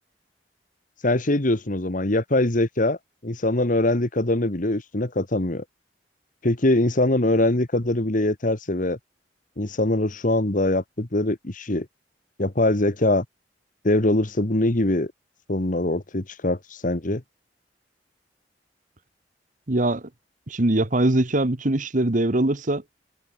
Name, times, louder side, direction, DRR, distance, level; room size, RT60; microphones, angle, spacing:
voice 1, 1.0-3.0 3.2-5.6 6.4-9.0 9.6-11.9 12.4-13.3 13.8-15.1 15.5-17.2, left 1 dB, 45° left, 1.7 m, -22 dB
voice 2, 19.7-20.1 20.5-22.8, right 1 dB, 45° right, 1.4 m, -22 dB
head